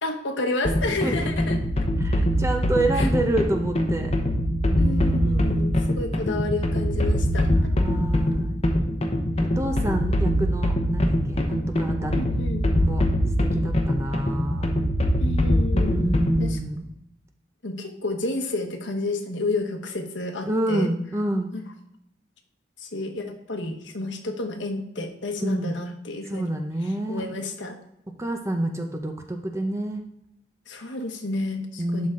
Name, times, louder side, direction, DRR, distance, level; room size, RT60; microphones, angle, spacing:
voice 1, 0.0-1.6 2.9-3.1 4.8-7.5 12.1-12.7 15.2-16.1 16.4-16.6 17.6-20.9 21.5-21.6 22.8-26.5 26.8-27.8 30.7-32.1, left 2 dB, 75° left, 4 dB, 1.2 m, -30 dB
sound 1, 0.6-16.6, equal, 30° left, 0.8 m, -23 dB
voice 2, 2.0-4.1 4.7-5.8 7.5-8.6 9.6-12.3 12.7-13.0 13.4-14.8 15.7-16.9 20.5-21.5 25.4-25.8 26.3-27.2 28.2-30.0 31.8-32.1, right 1 dB, 15° right, 5 dB, 0.6 m, -28 dB
11.5 x 3.9 x 3.8 m, 0.79 s
head